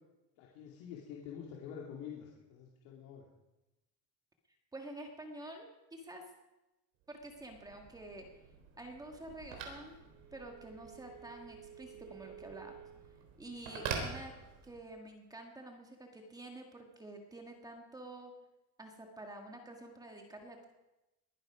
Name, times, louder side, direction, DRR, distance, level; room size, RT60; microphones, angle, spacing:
voice 1, 0.4-3.3, left 8 dB, 80° left, -3 dB, 2.7 m, -47 dB
voice 2, 4.7-5.6 5.9-6.2 7.1-8.2 8.8-10.0 10.3-12.7 13.4-14.3 14.6-18.3 18.8-20.7, right 1 dB, 10° right, 2 dB, 1.7 m, -48 dB
Telephone, 7.1-15.0, right 6 dB, 70° right, 3.8 m, -46 dB
21.0 x 11.0 x 5.1 m, 1.0 s
cardioid pair, 155°, 33 cm